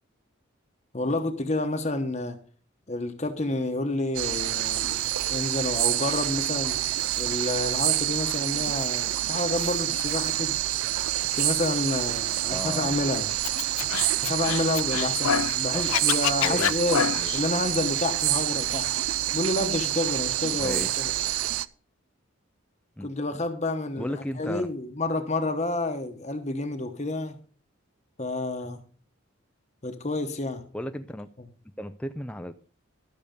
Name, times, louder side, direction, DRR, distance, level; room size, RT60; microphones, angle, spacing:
voice 1, 0.9-2.4 2.9-5.0 5.3-6.8 7.2-10.5 11.3-13.3 14.2-17.1 17.3-18.9 19.3-21.1 23.0-27.4 28.2-28.8 29.8-30.6, left 2 dB, 35° left, 1.0 m, -29 dB
sound 1, 4.1-21.6, right 14 dB, 85° right, 0.4 m, -27 dB
voice 2, 12.5-13.1 15.7-16.1 16.4-16.7 17.1-17.3 20.5-21.3 23.0-23.4 24.0-24.7 30.7-31.3 31.8-32.5, equal, 5° left, 0.4 m, -36 dB
Scratching (performance technique), 13.4-15.6 15.8-17.4, left 8 dB, 90° left, 0.5 m, -27 dB
12.5 x 6.7 x 5.1 m
head